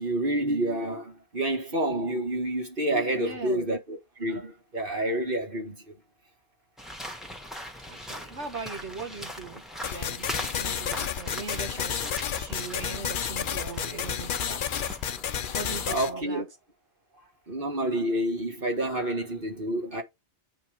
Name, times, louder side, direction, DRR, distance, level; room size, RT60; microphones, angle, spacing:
voice 1, 0.0-6.0 15.9-16.4 17.5-20.0, right 1 dB, 50° right, 2.1 m, -29 dB
voice 2, 3.1-3.7 7.9-15.0 15.5-16.5, right 4 dB, 80° right, 2.3 m, -40 dB
Steps mono, 6.8-15.9, equal, ahead, 1.4 m, -41 dB
sound 1, 9.8-16.1, left 8 dB, 55° left, 0.7 m, -31 dB
8.7 x 5.1 x 5.2 m
omnidirectional pair, 1.2 m